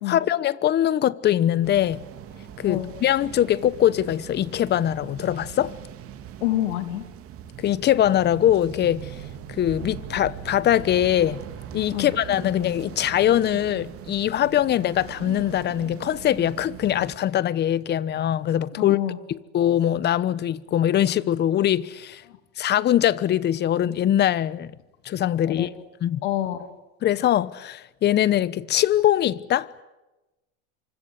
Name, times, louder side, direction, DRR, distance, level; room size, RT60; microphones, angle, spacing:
voice 1, 0.1-2.0 2.6-5.7 7.6-9.1 9.5-11.4 11.7-19.0 19.5-22.2 22.6-24.7 25.0-25.7 26.0-26.2 27.0-29.7, left 11 dB, 30° left, 1.0 m, -22 dB
sound 1, 1.6-17.2, right 9 dB, 40° right, 3.3 m, -40 dB
voice 2, 6.4-7.0 11.9-12.1 18.8-19.2 22.3-22.4 25.3-25.7 26.2-26.7, left 14 dB, 80° left, 2.9 m, -27 dB
26.0 x 25.5 x 8.1 m
supercardioid pair, 135°, 34 cm